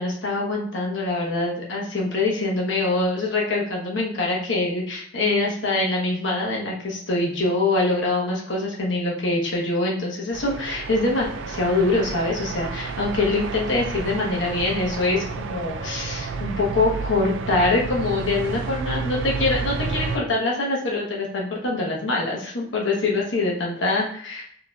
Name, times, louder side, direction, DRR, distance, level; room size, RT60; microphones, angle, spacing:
voice 1, 0.0-24.6, left 2 dB, 85° left, -2 dB, 1.0 m, -24 dB
sound 1, 10.3-20.2, right 4 dB, 85° right, 0.4 m, -31 dB
5.0 x 3.0 x 2.3 m, 0.62 s
head